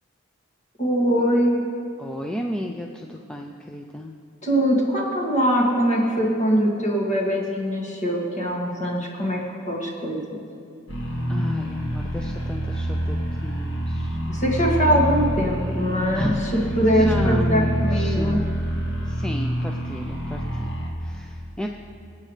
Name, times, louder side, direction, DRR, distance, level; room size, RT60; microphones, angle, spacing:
voice 1, 0.8-1.6 4.4-9.4 9.7-10.4 14.3-16.3 16.8-18.4, equal, 35° left, -3 dB, 2.3 m, -22 dB
voice 2, 2.0-4.1 11.3-14.2 16.1-18.5 19.0-20.7 21.0-21.7, equal, 5° left, 1 dB, 0.4 m, -33 dB
sound 1, 10.9-20.9, equal, 60° left, 2.0 m, -26 dB
25.5 x 8.6 x 3.3 m, 2.5 s
head